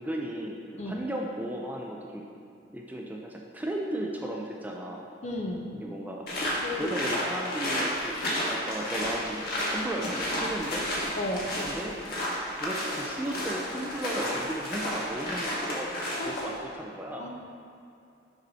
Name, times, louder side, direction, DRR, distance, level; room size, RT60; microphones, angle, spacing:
voice 1, 0.0-2.2 2.7-5.1 5.7-6.2 6.8-10.9 11.6-12.0 12.5-16.0 16.2-17.3, right 1 dB, 10° right, -1 dB, 0.5 m, -35 dB
voice 2, 5.2-5.7 6.4-6.9 11.2-11.6 16.2-16.4 17.2-17.3, left 1 dB, 40° left, 1 dB, 0.8 m, -33 dB
sound 1, 6.3-16.6, left 1 dB, 55° left, 1.6 m, -32 dB
6.6 x 6.0 x 4.2 m, 2.6 s
head